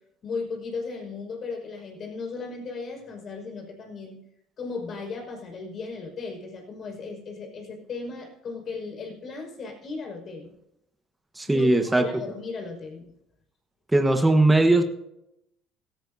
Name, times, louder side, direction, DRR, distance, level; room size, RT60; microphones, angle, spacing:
voice 1, 0.2-4.2 4.6-10.5 11.5-13.1, left 4 dB, 45° left, 2 dB, 5.7 m, -36 dB
voice 2, 11.4-12.1 13.9-14.8, right 2 dB, 10° right, 5 dB, 1.4 m, -19 dB
16.5 x 15.5 x 2.8 m, 0.83 s
cardioid pair, 105°, 0 cm